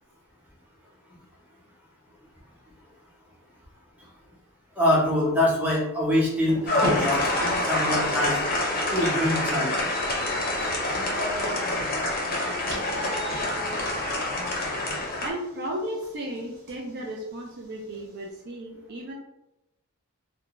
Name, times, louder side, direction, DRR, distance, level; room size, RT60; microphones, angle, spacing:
voice 1, 4.8-7.3 7.7-8.4 8.9-9.7, left 1 dB, 5° right, -5 dB, 0.7 m, -24 dB
sound 1, 6.3-9.3 9.7-9.8 10.1-18.1, left 1 dB, 80° right, 0.9 m, -39 dB
sound 2, 6.7-15.3, left 1 dB, 40° left, 0.6 m, -27 dB
voice 2, 15.2-19.1, right 1 dB, 50° right, -1 dB, 0.4 m, -34 dB
2.4 x 2.1 x 2.9 m, 0.90 s
head